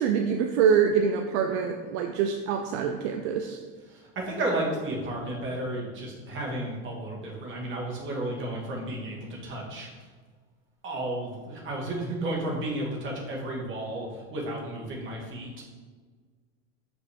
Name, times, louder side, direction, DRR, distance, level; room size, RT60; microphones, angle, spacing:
voice 1, 0.0-3.6, right 7 dB, 65° right, 5 dB, 0.6 m, -25 dB
voice 2, 3.9-10.1 10.8-15.6, right 1 dB, 30° right, -2 dB, 1.8 m, -33 dB
6.2 x 5.2 x 3.6 m, 1.5 s
supercardioid pair, 130°, 37 cm